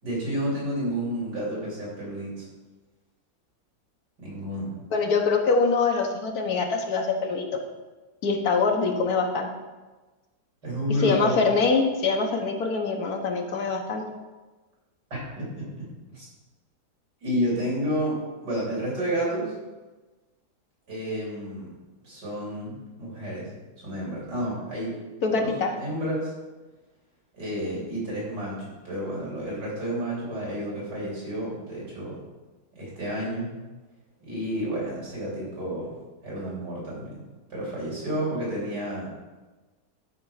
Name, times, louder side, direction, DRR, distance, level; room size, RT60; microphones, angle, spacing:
voice 1, 0.0-2.5 4.2-4.7 10.6-11.4 15.1-16.3 17.2-19.5 20.9-21.7 22.0-23.5 23.8-24.9 25.3-25.5 25.8-26.3 27.3-32.2 32.8-33.5 34.2-35.9 36.2-37.2 37.5-39.1, equal, 85° right, -6 dB, 4.4 m, -30 dB
voice 2, 4.9-7.6 8.2-9.5 11.0-14.0 25.2-25.7, left 4 dB, 65° left, 3 dB, 1.6 m, -24 dB
12.0 x 4.4 x 5.7 m, 1.2 s
omnidirectional pair, 1.8 m